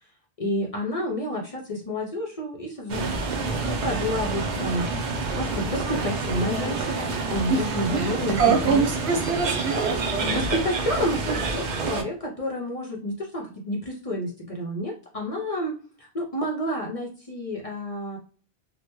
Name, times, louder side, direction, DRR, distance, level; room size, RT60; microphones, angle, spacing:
voice 1, 0.4-4.9 5.4-8.8 10.3-18.2, equal, 45° left, -1 dB, 0.5 m, -30 dB
sound 1, 2.9-12.0, right 3 dB, 55° right, 0.6 m, -28 dB
voice 2, 7.5-10.4, right 5 dB, 70° right, 2 dB, 1.1 m, -25 dB
3.2 x 2.2 x 3.0 m, 0.40 s
omnidirectional pair, 1.1 m